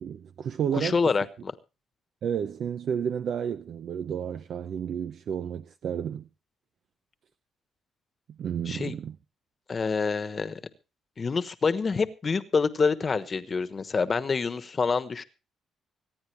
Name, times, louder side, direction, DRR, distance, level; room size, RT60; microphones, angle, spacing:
voice 1, 0.0-1.0 2.2-6.3 8.4-9.2, right 8 dB, 65° right, 0.6 m, -31 dB
voice 2, 0.7-1.5 8.7-8.9 9.7-10.5 11.2-15.2, left 5 dB, 35° left, 1.2 m, -27 dB
25.0 x 9.6 x 3.3 m
cardioid pair, 90°, 0 cm